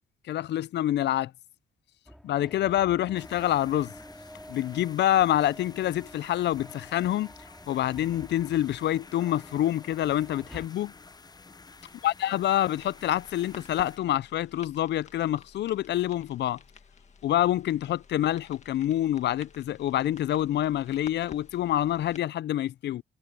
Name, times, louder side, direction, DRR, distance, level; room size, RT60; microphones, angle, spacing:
voice 1, 0.3-1.3 2.2-3.9 4.5-7.3 7.7-10.9 12.0-16.6 17.2-23.0, left 12 dB, 60° left, 0.5 m, -27 dB
sound 1, 2.1-10.7, equal, ahead, 2.4 m, -49 dB
sound 2, 3.1-14.0, left 4 dB, 20° left, 0.7 m, -51 dB
sound 3, 12.7-22.2, left 5 dB, 35° left, 2.0 m, -52 dB
cardioid pair, 90°, 20 cm